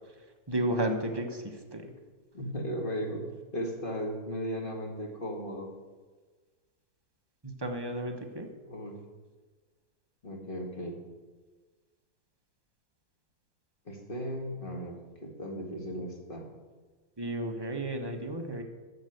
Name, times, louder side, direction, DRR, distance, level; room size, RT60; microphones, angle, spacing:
voice 1, 0.5-1.9 7.4-8.5 17.2-18.6, right 1 dB, 15° right, 4 dB, 0.9 m, -33 dB
voice 2, 2.3-5.7 8.7-9.0 10.2-11.0 13.9-16.5, equal, 30° left, 1 dB, 2.0 m, -36 dB
13.5 x 5.5 x 7.9 m, 1.4 s
omnidirectional pair, 1.9 m